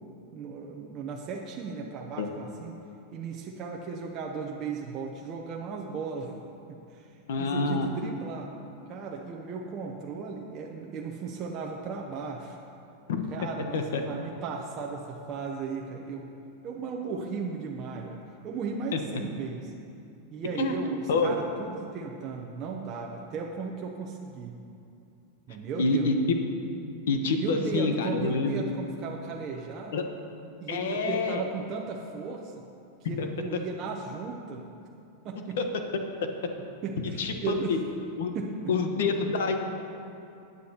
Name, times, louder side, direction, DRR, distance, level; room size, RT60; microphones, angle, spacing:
voice 1, 0.3-2.8 3.1-6.3 6.7-7.0 7.4-8.5 8.9-12.6 13.3-16.3 16.6-18.2 18.4-19.7 20.3-24.6 25.5-26.1 27.4-29.9 30.6-32.5 33.1-34.6 35.2-35.6 36.8-37.8 38.3-38.7, right 5 dB, 30° right, 0 dB, 0.6 m, -36 dB
voice 2, 7.3-7.9 13.1-13.2 13.7-14.0 18.9-19.0 20.6-20.8 21.1-21.3 25.8-26.1 27.1-28.6 29.9-30.0 30.7-31.4 33.0-33.6 35.6-35.8 37.0-37.8 38.2-38.3 38.7-39.6, left 4 dB, 80° left, 5 dB, 1.0 m, -27 dB
14.5 x 9.5 x 2.9 m, 2.6 s
supercardioid pair, 165°, 0 cm